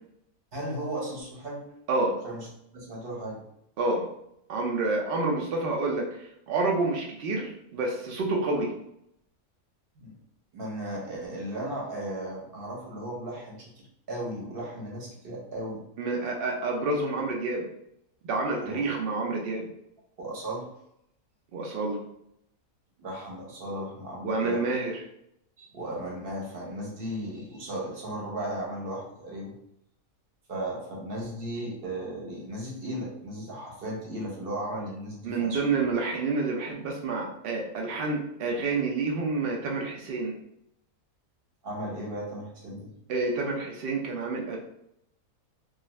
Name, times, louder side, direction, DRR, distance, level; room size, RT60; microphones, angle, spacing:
voice 1, 0.5-1.6 2.2-2.5 2.7-3.4 10.0-10.2 10.5-13.6 14.1-15.8 18.6-18.8 20.2-20.7 23.0-24.6 25.6-29.5 30.5-35.6 41.6-42.9, right 1 dB, 45° right, -3 dB, 0.9 m, -36 dB
voice 2, 4.5-8.7 16.0-17.6 18.2-19.7 21.5-22.0 24.2-24.9 35.2-40.3 43.1-44.6, right 3 dB, 80° right, 0 dB, 0.5 m, -28 dB
2.4 x 2.3 x 3.0 m, 0.77 s
omnidirectional pair, 1.5 m